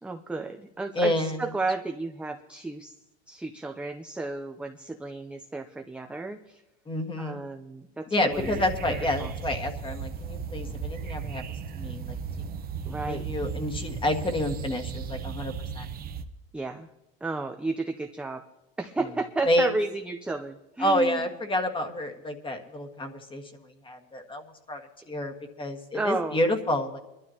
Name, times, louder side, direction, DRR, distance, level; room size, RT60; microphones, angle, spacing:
voice 1, 0.0-2.9 3.3-6.6 7.2-8.6 8.9-9.3 12.9-13.2 16.5-16.9 17.2-18.4 18.8-21.3 25.9-26.4, right 3 dB, 5° right, 5 dB, 0.6 m, -33 dB
voice 2, 0.9-1.4 6.9-7.4 8.1-11.4 11.8-12.2 13.0-15.9 19.4-19.7 20.8-23.4 23.8-24.4 24.7-27.0, left 1 dB, 15° left, 5 dB, 1.7 m, -29 dB
sound 1, 8.3-16.2, right 6 dB, 30° right, 0.9 m, -35 dB
23.5 x 12.0 x 2.9 m, 0.96 s
supercardioid pair, 120°, 29 cm